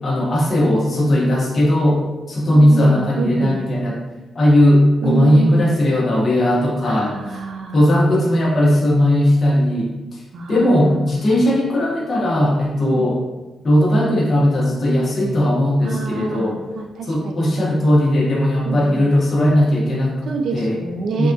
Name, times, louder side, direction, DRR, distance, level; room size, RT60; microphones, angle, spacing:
voice 1, 0.0-4.0 4.3-7.4 7.7-10.2 10.5-13.2 13.6-16.6 17.1-20.2 20.5-20.8 21.2-21.3, left 1 dB, 45° left, -3 dB, 0.7 m, -17 dB
voice 2, 2.5-3.6 5.0-5.7 6.8-7.8 10.3-11.1 12.8-13.1 14.0-14.2 15.8-17.4 18.6-19.0 20.3-21.3, right 5 dB, 75° right, 3 dB, 0.4 m, -27 dB
3.4 x 2.2 x 2.6 m, 1.1 s
cardioid pair, 120°, 0 cm